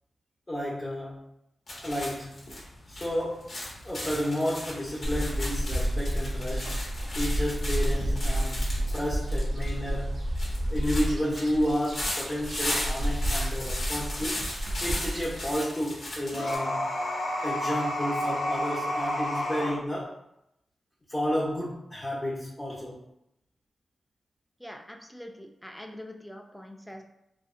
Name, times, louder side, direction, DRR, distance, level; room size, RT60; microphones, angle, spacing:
voice 1, 0.5-1.2 1.8-2.4 2.9-3.6 3.8-6.8 7.1-8.7 8.9-10.2 10.7-14.4 14.8-16.8 17.4-20.2 21.1-23.0, equal, 30° left, -8 dB, 0.7 m, -31 dB
sound 1, 1.7-16.6, left 1 dB, 60° left, 0.8 m, -37 dB
sound 2, 5.0-15.6, equal, 65° right, 0.4 m, -30 dB
sound 3, 16.3-19.8, left 1 dB, 90° left, 0.5 m, -30 dB
voice 2, 24.6-27.0, left 1 dB, 5° left, 2 dB, 0.3 m, -44 dB
2.5 x 2.1 x 2.5 m, 0.81 s
cardioid pair, 70°, 0 cm